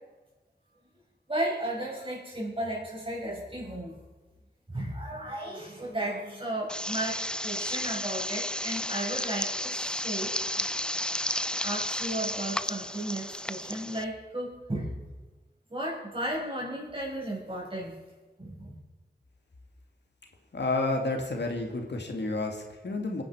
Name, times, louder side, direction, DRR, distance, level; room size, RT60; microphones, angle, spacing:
voice 1, 1.3-4.0 4.7-10.7 11.6-15.0 15.7-18.0 18.4-18.8, right 1 dB, 30° right, -3 dB, 6.1 m, -34 dB
sound 1, 6.7-14.0, left 1 dB, 5° left, 0.4 m, -32 dB
voice 2, 20.5-23.2, left 2 dB, 80° left, 2 dB, 2.2 m, -30 dB
26.0 x 9.9 x 4.9 m, 1.2 s
wide cardioid pair, 65°, 18 cm